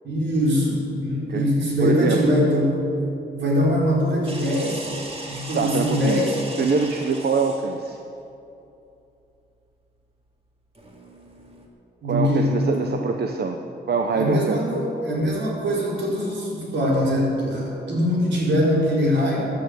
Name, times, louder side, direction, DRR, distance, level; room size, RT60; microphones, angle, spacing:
voice 1, 0.0-2.8 3.3-4.9 5.3-6.4 12.0-13.0 14.1-19.4, equal, 85° right, -3 dB, 4.4 m, -22 dB
voice 2, 1.8-2.4 5.5-6.3 6.6-8.0 12.1-13.6 13.9-14.6, right 5 dB, 65° right, 4 dB, 0.9 m, -24 dB
sound 1, 4.3-7.8 10.7-11.7, right 2 dB, 35° right, 2.4 m, -37 dB
15.0 x 9.8 x 7.8 m, 2.7 s
wide cardioid pair, 95°, 18 cm